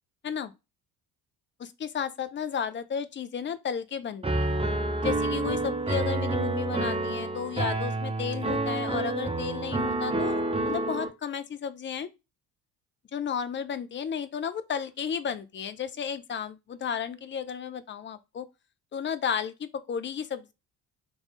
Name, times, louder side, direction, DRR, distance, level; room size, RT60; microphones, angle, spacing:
voice 1, 1.6-4.6 5.0-12.1 13.1-18.5 18.9-20.5, left 7 dB, 25° left, 0.5 m, -33 dB
Piano, 4.2-11.1, right 2 dB, 10° right, 0.8 m, -28 dB
3.8 x 3.0 x 3.7 m
figure-of-eight pair, 50°, 49 cm